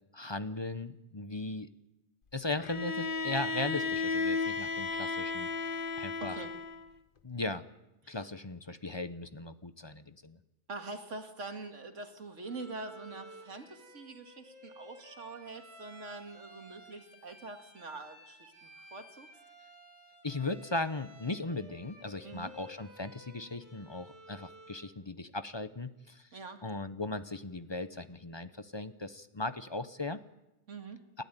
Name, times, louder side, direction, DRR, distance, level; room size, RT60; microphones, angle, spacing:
voice 1, 0.1-1.7 2.3-6.4 7.2-7.6 8.1-10.4 20.2-26.3 26.6-30.2, left 2 dB, 25° left, 12 dB, 0.8 m, -38 dB
Bowed string instrument, 2.6-6.9, left 4 dB, 50° left, 1.1 m, -34 dB
voice 2, 6.2-6.5 8.1-8.2 10.7-19.3 22.2-22.5 26.3-26.6 30.7-31.0, right 3 dB, 80° right, 5 dB, 2.5 m, -44 dB
Bowed string instrument 2, 12.4-24.9, equal, 40° right, 5.7 m, -55 dB
29.0 x 12.5 x 9.2 m, 0.94 s
omnidirectional pair, 1.2 m